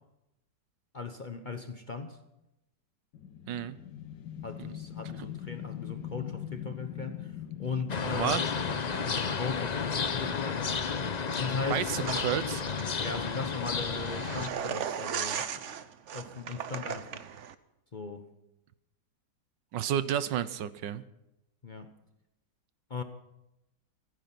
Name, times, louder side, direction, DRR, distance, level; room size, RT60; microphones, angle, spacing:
voice 1, 0.9-2.2 4.4-7.3 7.6-8.4 8.9-10.7 11.3-12.2 13.0-15.8 16.1-17.2 17.9-18.3 21.6-21.9 22.9-23.0, left 4 dB, 35° left, 7 dB, 0.8 m, -38 dB
sound 1, 3.1-15.4, left 11 dB, 75° left, 1.7 m, -44 dB
voice 2, 3.5-3.8 8.1-8.4 11.7-12.6 19.7-21.0, right 10 dB, 85° right, 15 dB, 1.5 m, -31 dB
sound 2, 7.9-14.5, left 5 dB, 60° left, 0.4 m, -32 dB
sound 3, 12.0-17.5, right 8 dB, 55° right, 0.9 m, -37 dB
15.5 x 14.5 x 6.0 m, 0.90 s
omnidirectional pair, 1.9 m